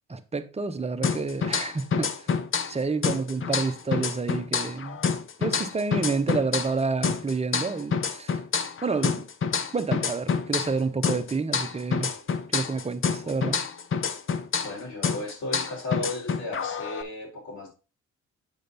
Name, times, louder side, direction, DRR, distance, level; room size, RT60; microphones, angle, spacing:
voice 1, 0.1-2.3 2.7-5.1 5.4-8.4 8.8-9.2 9.7-12.1 12.5-13.6, right 4 dB, 20° right, 0.9 m, -29 dB
sound 1, 1.0-2.8 3.0-6.8 7.0-10.8 11.0-14.8 15.0-17.0, left 6 dB, 45° left, 0.8 m, -28 dB
voice 2, 14.6-17.7, left 2 dB, 70° left, 4.7 m, -35 dB
8.0 x 5.2 x 4.0 m
cardioid pair, 90°, 30 cm